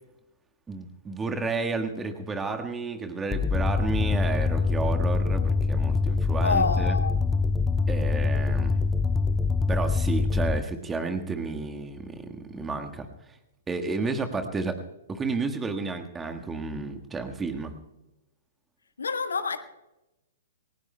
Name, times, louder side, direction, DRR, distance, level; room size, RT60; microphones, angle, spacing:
voice 1, 0.7-6.9 7.9-8.8 9.7-13.1 13.7-14.8 15.1-17.7, right 4 dB, 10° right, 5 dB, 1.5 m, -31 dB
sound 1, 3.3-10.6, left 4 dB, 15° left, 0.5 m, -24 dB
voice 2, 6.4-7.2 19.0-19.6, left 4 dB, 65° left, 9 dB, 1.4 m, -27 dB
28.0 x 20.5 x 2.2 m, 0.97 s
figure-of-eight pair, 110°, 0 cm